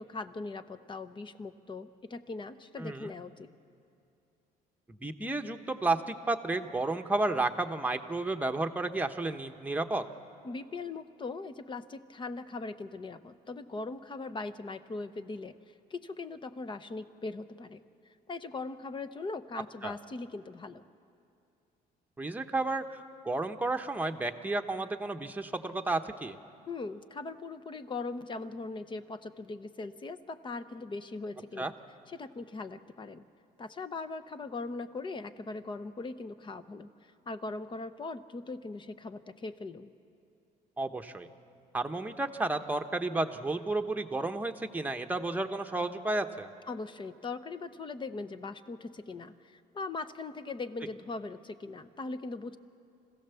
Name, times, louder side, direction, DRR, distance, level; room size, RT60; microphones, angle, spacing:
voice 1, 0.0-3.5 10.4-15.6 15.9-17.8 18.3-20.8 26.7-31.7 32.1-33.2 33.6-39.9 46.7-52.6, left 3 dB, 30° left, 12 dB, 0.8 m, -40 dB
voice 2, 2.8-3.1 4.9-10.0 19.8-19.9 22.2-26.4 31.6-31.7 40.8-41.3 41.7-46.5, right 2 dB, 10° right, 5 dB, 1.0 m, -32 dB
26.0 x 16.0 x 7.0 m, 2.6 s
cardioid pair, 110°, 17 cm